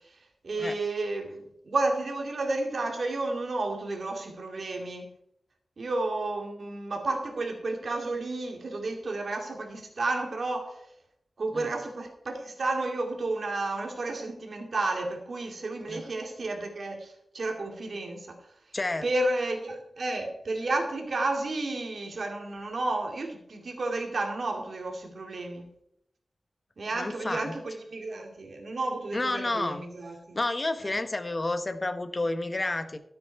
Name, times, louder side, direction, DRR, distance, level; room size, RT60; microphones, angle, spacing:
voice 1, 0.4-1.4 1.6-5.1 5.8-10.8 11.4-18.3 19.0-25.7 26.8-30.4 30.8-31.0, right 2 dB, 60° right, 2 dB, 2.6 m, -31 dB
voice 2, 18.7-19.1 26.9-27.6 29.1-29.8 30.3-33.0, left 2 dB, 30° left, 10 dB, 1.0 m, -30 dB
13.0 x 8.6 x 4.7 m, 0.75 s
wide cardioid pair, 95°, 0 cm